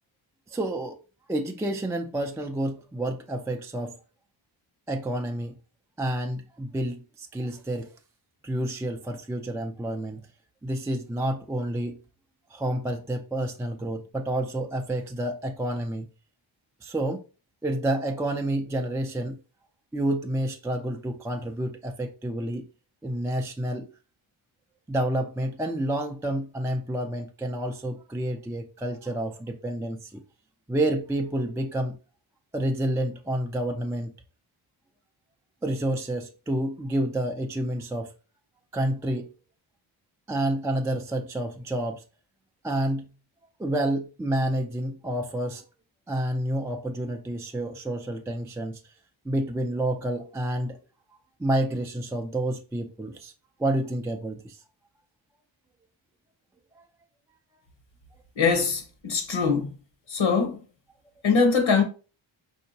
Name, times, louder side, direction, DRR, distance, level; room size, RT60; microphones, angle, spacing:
voice 1, 0.5-1.0 1.3-3.9 4.9-5.5 6.0-7.9 8.4-10.2 10.6-12.0 12.5-16.0 16.8-17.2 17.6-19.4 19.9-22.7 23.0-23.9 24.9-30.2 30.7-32.0 32.5-34.1 35.6-38.1 38.7-39.3 40.3-42.0 42.6-43.1 43.6-45.6 46.1-48.8 49.2-50.8 51.4-53.3 53.6-54.6 56.8-56.9, right 1 dB, 5° right, 0.3 m, -29 dB
voice 2, 58.4-59.7 60.1-60.6 61.2-61.8, left 5 dB, 70° left, 0.9 m, -22 dB
4.3 x 2.8 x 2.7 m
wide cardioid pair, 85°, 50 cm